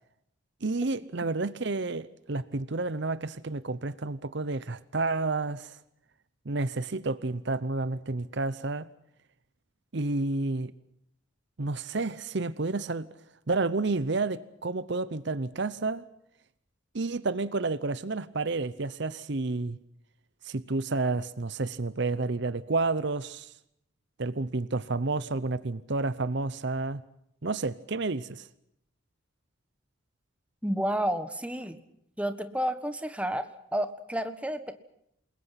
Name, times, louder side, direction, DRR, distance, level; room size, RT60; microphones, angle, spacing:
voice 1, 0.6-5.8 6.4-8.9 9.9-10.7 11.6-13.1 13.5-16.1 16.9-19.8 20.4-23.5 24.2-27.0 27.4-28.5, right 3 dB, 55° right, 17 dB, 0.8 m, -30 dB
voice 2, 30.6-31.8 32.2-34.7, equal, 5° right, 10 dB, 1.4 m, -31 dB
28.0 x 21.5 x 5.9 m, 0.76 s
head